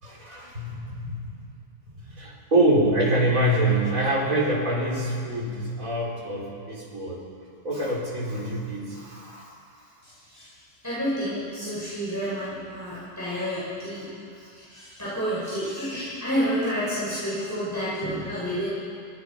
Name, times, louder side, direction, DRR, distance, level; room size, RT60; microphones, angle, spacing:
voice 1, 0.0-1.4 2.0-7.2 7.6-9.6, right 1 dB, 55° right, -4 dB, 4.8 m, -25 dB
voice 2, 10.0-10.5 10.8-14.1 14.4-18.7, equal, 10° left, -10 dB, 6.4 m, -30 dB
26.0 x 18.0 x 5.8 m, 2.3 s
omnidirectional pair, 1.7 m